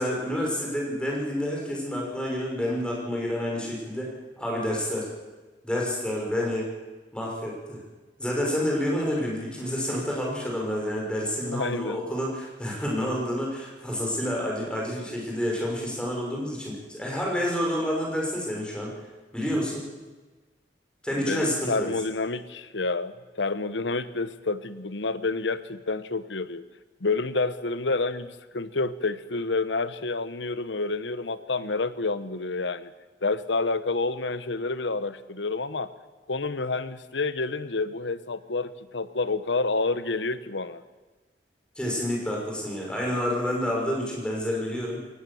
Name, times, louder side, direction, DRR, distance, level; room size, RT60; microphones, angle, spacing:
voice 1, 0.0-5.1 5.6-6.7 7.1-7.8 8.2-18.9 19.3-19.8 21.0-21.9 41.8-45.1, equal, 5° left, -2 dB, 5.9 m, -29 dB
voice 2, 11.5-12.0 21.2-26.6 27.0-32.9 33.2-35.9 36.3-40.8, left 3 dB, 90° left, 14 dB, 1.1 m, -29 dB
22.0 x 18.0 x 7.1 m, 1.3 s
head